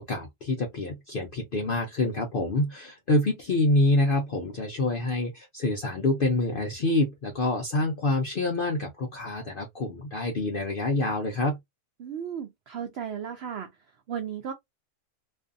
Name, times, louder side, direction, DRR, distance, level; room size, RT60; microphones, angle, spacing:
voice 1, 0.0-11.6, left 2 dB, 65° left, 0.5 m, -26 dB
voice 2, 12.0-13.7 14.1-14.5, right 8 dB, 90° right, 0.5 m, -34 dB
2.6 x 2.4 x 2.5 m
omnidirectional pair, 1.6 m